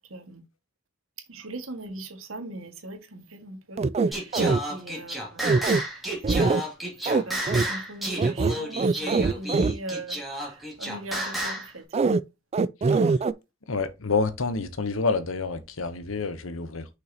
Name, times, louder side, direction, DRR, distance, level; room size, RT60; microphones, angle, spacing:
voice 1, 0.1-0.4 1.3-4.4 4.7-12.0, right 2 dB, 90° right, 1.8 m, -40 dB
sound 1, 3.8-4.6 5.4-5.8 6.2-6.6 7.1-7.2 7.5-7.6 8.2-9.7 11.9-12.2 12.5-13.3, right 4 dB, 30° right, 0.3 m, -22 dB
Singing, 4.1-11.7, right 1 dB, ahead, 2.5 m, -32 dB
voice 2, 13.7-16.9, left 4 dB, 80° left, 1.0 m, -28 dB
6.5 x 5.5 x 2.9 m
head